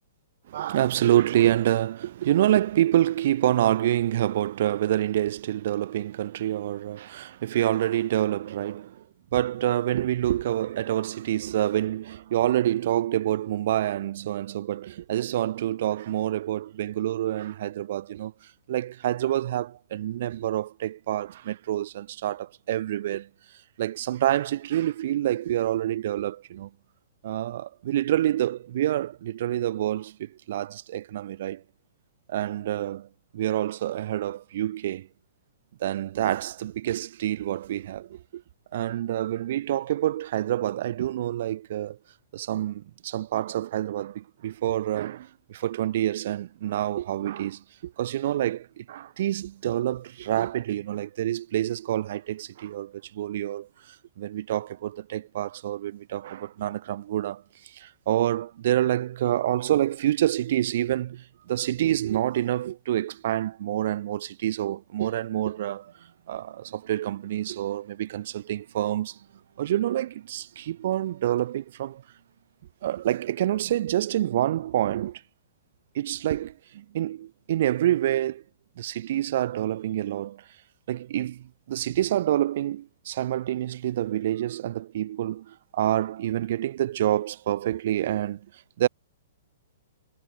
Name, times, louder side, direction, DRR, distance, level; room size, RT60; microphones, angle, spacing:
voice 1, 0.5-9.0 9.3-18.3 18.7-23.3 23.8-26.7 27.2-31.6 32.3-33.1 33.3-35.1 35.8-38.4 38.7-42.0 42.3-65.9 66.3-69.2 69.6-72.0 72.8-75.2 75.9-78.4 78.8-80.4 80.9-88.5 88.8-88.9, right 12 dB, 50° right, 0.5 m, -27 dB
sound 1, 65.5-75.0, right 9 dB, 65° right, 2.2 m, -58 dB
hypercardioid pair, 165°, 0 cm